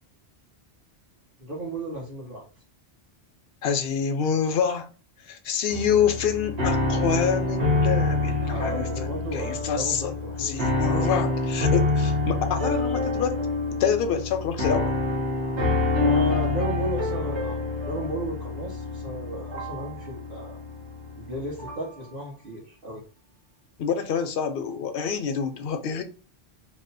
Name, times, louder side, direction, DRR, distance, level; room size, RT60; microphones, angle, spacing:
voice 1, 1.4-2.4 8.4-10.6 11.0-11.3 11.6-11.7 16.0-20.6 21.2-23.0, right 1 dB, 55° right, 1.1 m, -34 dB
voice 2, 3.6-4.9 5.3-10.1 10.4-13.4 13.8-14.9 23.8-26.0, left 7 dB, 65° left, 0.7 m, -27 dB
sound 1, 5.7-21.9, left 2 dB, 80° right, 1.2 m, -27 dB
2.7 x 2.1 x 3.9 m
omnidirectional pair, 1.1 m